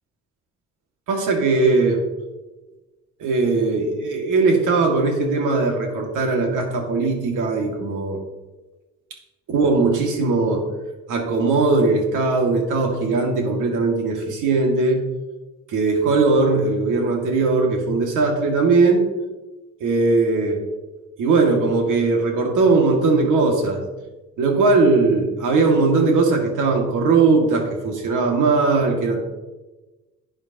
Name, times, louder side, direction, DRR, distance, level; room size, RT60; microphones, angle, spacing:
voice 1, 1.1-2.0 3.2-8.2 9.5-10.6 11.1-15.1 15.7-19.0 19.8-20.6 21.2-23.8 24.4-29.2, right 3 dB, 85° right, 2 dB, 2.1 m, -19 dB
11.5 x 8.7 x 2.9 m, 1.1 s
cardioid pair, 90°, 30 cm